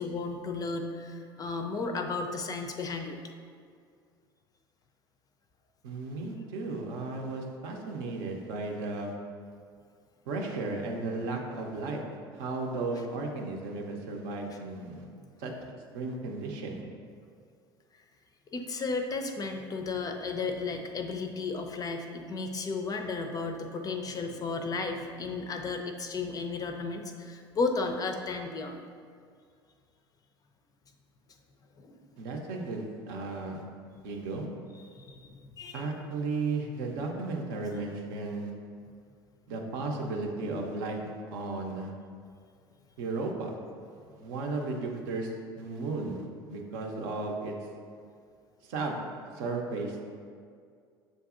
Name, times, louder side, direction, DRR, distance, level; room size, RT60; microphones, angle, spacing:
voice 1, 0.0-3.2 18.5-28.8 31.8-32.1 34.9-35.9, left 4 dB, 30° left, 5 dB, 0.4 m, -34 dB
voice 2, 5.8-9.1 10.3-12.0 12.3-15.1 15.4-15.5 15.9-16.8 32.2-33.6 34.0-34.5 35.7-38.5 39.5-41.9 43.0-43.6 43.9-47.5 48.6-49.0 49.3-50.0, right 3 dB, 65° right, 1 dB, 0.6 m, -34 dB
7.1 x 2.6 x 2.4 m, 2.2 s
hypercardioid pair, 65°, 13 cm